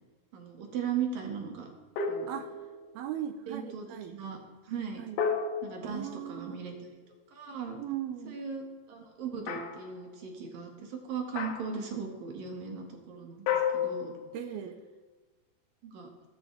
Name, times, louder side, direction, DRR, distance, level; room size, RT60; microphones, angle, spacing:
voice 1, 0.3-1.7 2.1-2.3 3.5-4.4 4.6-5.0 5.6-7.0 7.3-7.8 8.2-14.1 15.8-16.1, right 6 dB, 60° right, 2 dB, 3.2 m, -38 dB
sound 1, 2.0-2.9 5.2-6.9 9.5-9.9 11.4-11.9 13.5-14.7, left 6 dB, 90° left, 3.5 m, -33 dB
voice 2, 3.0-4.1 5.0-5.2 5.8-6.6 7.8-8.4 14.3-14.8, right 11 dB, 75° right, 8 dB, 2.4 m, -38 dB
22.0 x 10.0 x 3.4 m, 1.2 s
omnidirectional pair, 4.9 m